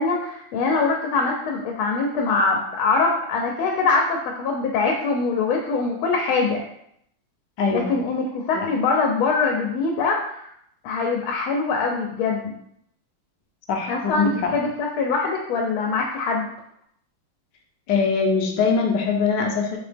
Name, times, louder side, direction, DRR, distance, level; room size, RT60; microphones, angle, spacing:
voice 1, 0.0-6.6 7.7-10.5 10.8-12.5 13.9-16.5, left 4 dB, 85° left, 0 dB, 1.5 m, -23 dB
voice 2, 7.6-7.9 8.6-8.7 13.7-14.5 17.9-19.8, left 5 dB, 70° left, 2 dB, 1.2 m, -22 dB
4.3 x 2.9 x 3.4 m, 0.72 s
omnidirectional pair, 2.2 m